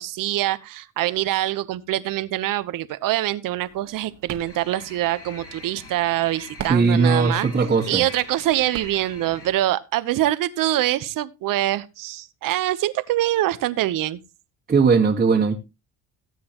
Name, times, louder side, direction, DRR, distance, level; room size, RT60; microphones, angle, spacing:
voice 1, 0.0-7.5 7.9-14.2, right 14 dB, 70° right, 1.0 m, -24 dB
sound 1, 3.6-9.6, right 8 dB, 55° right, 1.8 m, -42 dB
sound 2, 4.4-9.5, left 2 dB, 45° left, 4.2 m, -42 dB
voice 2, 6.7-8.0 14.7-15.5, right 4 dB, 25° right, 1.8 m, -18 dB
17.5 x 8.6 x 3.0 m
cardioid pair, 115°, 34 cm